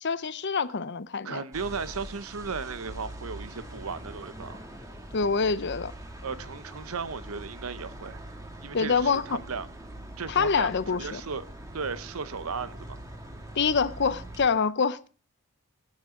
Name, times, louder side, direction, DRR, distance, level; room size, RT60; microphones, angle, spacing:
voice 1, 0.0-1.4 5.1-5.9 8.7-9.4 10.3-11.2 13.6-15.1, left 5 dB, 50° left, 0.7 m, -26 dB
voice 2, 1.2-4.6 6.2-8.2 8.6-9.7 10.2-11.4 11.7-13.0, right 5 dB, 70° right, 0.8 m, -35 dB
sound 1, 1.5-14.5, right 1 dB, 15° right, 1.5 m, -43 dB
18.5 x 9.6 x 3.7 m
head